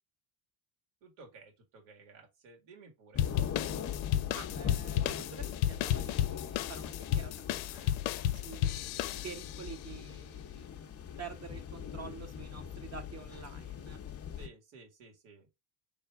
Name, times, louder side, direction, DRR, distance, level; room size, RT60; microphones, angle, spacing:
voice 1, 1.0-3.3 14.4-15.5, right 4 dB, 70° right, 2.1 m, -55 dB
sound 1, 3.1-14.5, left 8 dB, 30° left, 0.7 m, -42 dB
sound 2, 3.2-9.7, left 11 dB, 90° left, 0.6 m, -33 dB
voice 2, 4.3-8.0 8.3-14.0, right 6 dB, 30° right, 1.0 m, -48 dB
3.4 x 3.4 x 4.7 m
supercardioid pair, 100°, 50 cm